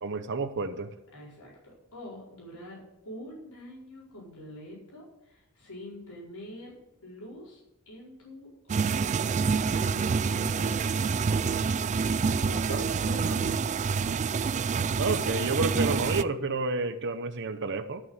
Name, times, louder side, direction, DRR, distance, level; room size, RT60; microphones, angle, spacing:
voice 1, 0.0-0.9 12.7-12.8 15.0-18.0, right 3 dB, 55° right, 9 dB, 0.8 m, -30 dB
voice 2, 1.1-6.7 7.0-7.6 7.9-9.0 9.7-11.5 12.4-13.9, left 1 dB, 80° left, -5 dB, 4.8 m, -45 dB
sound 1, 8.7-16.2, right 5 dB, 30° right, 0.3 m, -27 dB
12.5 x 6.4 x 8.0 m, 0.88 s
head